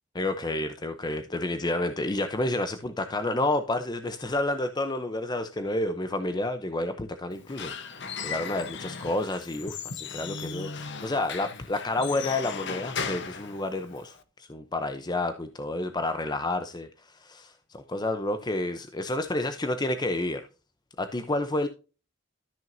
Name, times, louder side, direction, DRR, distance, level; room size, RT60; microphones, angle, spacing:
voice 1, 0.1-20.5 21.0-21.7, left 2 dB, 20° left, 0.6 m, -30 dB
Squeak / Wood, 7.3-14.2, left 5 dB, 60° left, 1.0 m, -37 dB
13.0 x 6.1 x 2.6 m
head